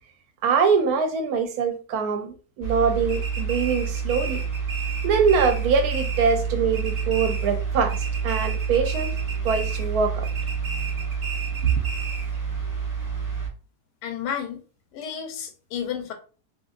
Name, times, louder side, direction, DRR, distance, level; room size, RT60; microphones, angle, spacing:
voice 1, 0.4-4.4 5.0-9.1 9.4-10.3 11.7-11.8, right 5 dB, 70° right, 1.0 m, -23 dB
sound 1, 2.6-13.5, right 6 dB, 25° right, 1.0 m, -28 dB
sound 2, 3.1-6.5 6.7-7.6 7.9-9.9 10.2-12.4, right 3 dB, 55° right, 0.5 m, -36 dB
voice 2, 14.0-14.6 14.9-16.1, left 8 dB, 90° left, 1.2 m, -31 dB
2.9 x 2.6 x 2.3 m
omnidirectional pair, 1.8 m